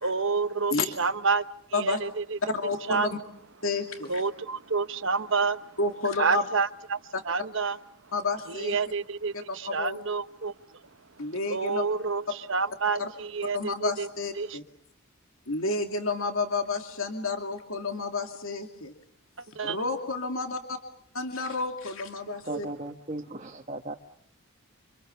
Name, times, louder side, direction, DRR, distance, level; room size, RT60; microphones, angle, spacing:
voice 1, 0.0-2.4 2.9-3.1 4.1-5.8 6.2-7.0 7.2-7.8 8.5-10.5 11.5-14.1 14.4-14.6 19.5-19.8 22.5-22.6, right 4 dB, 55° right, 1.1 m, -29 dB
voice 2, 2.5-3.1 3.6-4.2 5.8-6.4 8.1-8.7 9.7-10.0 11.2-11.8 13.0-13.1 13.5-14.6 15.5-18.9 19.6-20.8 21.1-22.7, left 3 dB, 65° left, 2.6 m, -30 dB
voice 3, 22.5-23.9, right 2 dB, 30° right, 1.5 m, -36 dB
29.5 x 26.5 x 7.0 m
head